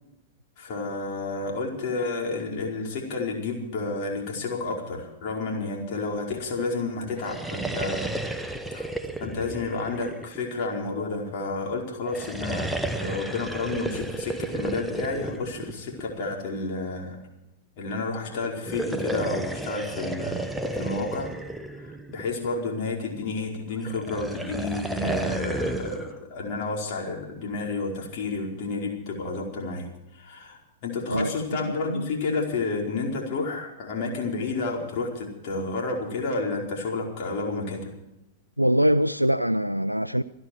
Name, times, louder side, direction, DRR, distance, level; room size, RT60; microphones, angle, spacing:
voice 1, 0.6-8.1 8.7-8.9 9.2-17.2 17.8-20.5 20.7-21.3 21.8-29.9 30.1-38.0, left 3 dB, 45° left, 4.9 m, -31 dB
sound 1, 7.1-10.7 12.0-16.4 18.5-22.5 23.8-26.1, right 1 dB, 5° right, 1.0 m, -32 dB
voice 2, 31.1-32.1 38.6-40.2, equal, 90° right, 0.4 m, -24 dB
27.0 x 10.5 x 4.6 m
figure-of-eight pair, 95°, 0 cm